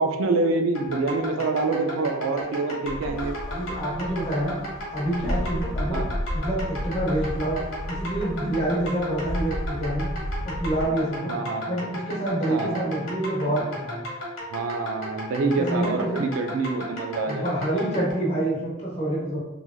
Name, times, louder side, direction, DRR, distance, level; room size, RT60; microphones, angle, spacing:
voice 1, 0.0-3.4 5.9-6.1 11.3-11.8 12.5-13.0 14.5-17.5, right 3 dB, 80° right, 6 dB, 0.4 m, -26 dB
sound 1, 0.7-18.1, equal, 85° left, 1.1 m, -35 dB
sound 2, 2.8-10.8, equal, 65° left, 0.5 m, -32 dB
voice 2, 3.5-4.6 4.9-6.0 6.3-7.6 7.9-10.1 10.4-11.3 11.7-14.0 15.5-16.2 17.2-19.4, right 1 dB, 30° left, -5 dB, 0.9 m, -27 dB
3.2 x 2.4 x 2.3 m, 1.0 s
head